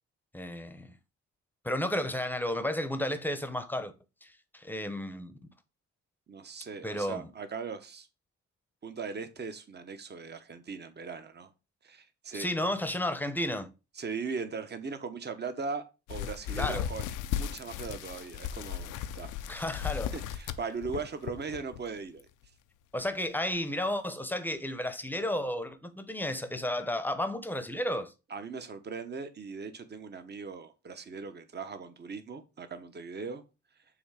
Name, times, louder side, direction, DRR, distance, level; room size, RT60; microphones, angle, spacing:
voice 1, 0.3-0.9 1.6-3.9 4.2-5.3 6.8-7.3 12.3-13.7 16.6-16.9 19.5-20.1 22.9-28.1, left 1 dB, 5° left, 0.8 m, -32 dB
voice 2, 6.3-8.1 8.8-11.5 11.8-12.5 14.0-17.1 17.3-19.3 20.1-22.3 28.3-33.4, right 5 dB, 35° right, 1.0 m, -39 dB
sound 1, 16.1-21.8 22.2-22.4 23.0-23.1 23.5-23.6, left 10 dB, 85° left, 0.6 m, -36 dB
6.9 x 2.8 x 4.8 m
cardioid pair, 90°, 30 cm